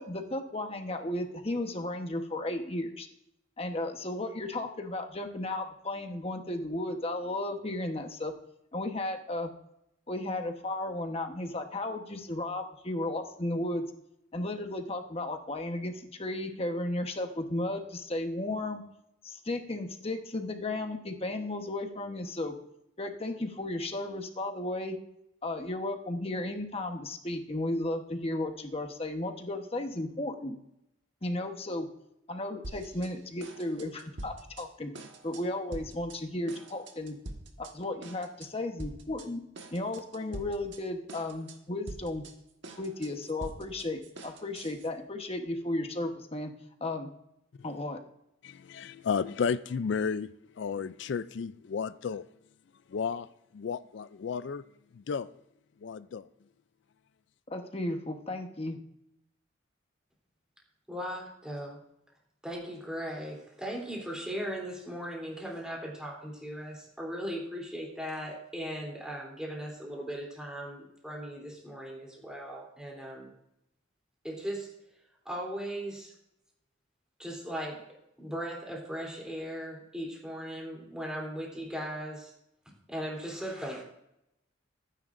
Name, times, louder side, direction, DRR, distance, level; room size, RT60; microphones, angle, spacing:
voice 1, 0.1-3.1 3.6-8.3 8.7-9.5 10.1-13.8 14.3-18.8 19.2-22.5 23.0-25.0 25.4-30.6 31.2-31.9 32.3-34.9 35.2-37.2 37.6-39.4 39.7-42.2 42.8-46.5 46.8-47.1 47.6-48.0 57.5-58.8, left 1 dB, 30° left, 5 dB, 1.1 m, -34 dB
sound 1, 32.6-33.1 33.4-34.7 34.9-35.4 35.7-36.2 36.5-37.7 38.0-38.5 38.8-39.3 39.6-40.8 41.1-41.6 41.9-44.9, right 1 dB, 65° right, 1.5 m, -44 dB
voice 2, 48.4-52.2 52.9-53.3 53.5-54.6 54.9-55.3 55.8-56.3, left 6 dB, 60° left, 16 dB, 0.4 m, -33 dB
voice 3, 60.9-61.8 62.4-73.3 74.2-74.7 75.2-76.1 77.2-82.3 82.9-83.8, equal, 5° right, -2 dB, 3.3 m, -38 dB
22.5 x 9.9 x 2.6 m, 0.80 s
head